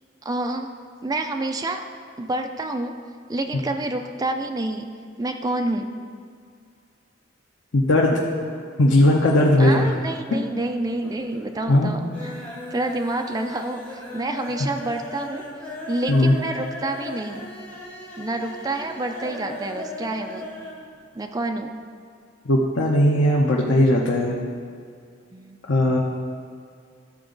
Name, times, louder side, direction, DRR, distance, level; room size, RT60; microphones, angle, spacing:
voice 1, 0.2-0.7 1.0-1.9 2.2-2.9 3.3-4.9 5.2-5.9 9.6-15.4 15.9-17.5 18.2-20.5 21.1-21.7 25.3-25.6, right 2 dB, 20° right, 5 dB, 0.4 m, -28 dB
voice 2, 7.7-8.2 8.8-9.9 11.7-11.9 16.1-16.4 22.5-24.4 25.6-26.0, left 1 dB, 80° left, -2 dB, 0.9 m, -18 dB
sound 1, 10.4-10.7 11.0-11.5 11.8-20.8 21.1-21.2 21.5-21.6, left 1 dB, 10° left, 2.4 m, -37 dB
14.0 x 4.7 x 3.9 m, 2.3 s
head